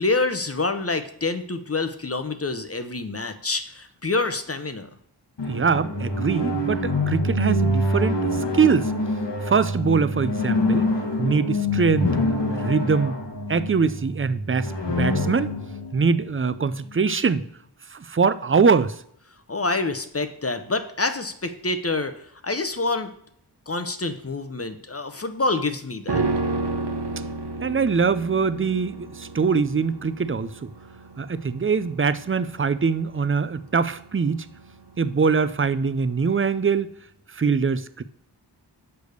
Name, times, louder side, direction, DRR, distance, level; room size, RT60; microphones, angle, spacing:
voice 1, 0.0-4.9 19.5-23.1 23.7-26.2, left 3 dB, 35° left, 9 dB, 0.8 m, -27 dB
sound 1, 5.4-17.0, left 1 dB, 75° left, 1.5 m, -26 dB
voice 2, 5.5-8.9 9.4-10.9 11.2-12.1 12.5-13.2 13.5-15.5 15.9-17.4 17.9-19.0 27.6-30.7 31.2-34.5 35.0-36.9 37.3-38.0, right 5 dB, 30° right, 14 dB, 0.5 m, -23 dB
sound 2, 26.1-35.5 35.8-35.9, right 3 dB, 70° right, 1.0 m, -31 dB
6.9 x 5.0 x 6.5 m, 0.68 s
wide cardioid pair, 65°, 43 cm